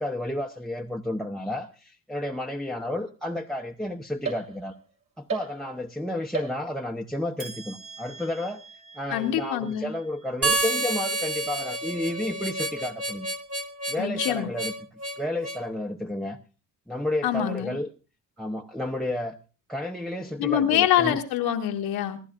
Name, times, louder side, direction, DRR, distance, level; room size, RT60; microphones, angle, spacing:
voice 1, 0.0-4.7 5.2-8.6 9.0-13.3 13.9-14.7 15.2-16.4 16.9-17.9 18.4-19.4 19.7-21.2, left 1 dB, ahead, 0.9 m, -31 dB
sound 1, 4.2-4.9 5.3-5.9 6.3-7.0 7.4-10.8, right 5 dB, 65° right, 5.7 m, -39 dB
voice 2, 9.1-9.9 14.0-14.5 17.2-17.8 20.4-22.2, left 10 dB, 90° left, 1.6 m, -25 dB
Harmonica, 10.4-15.6, right 2 dB, 40° right, 1.8 m, -29 dB
25.0 x 11.5 x 2.5 m
cardioid pair, 80°, 37 cm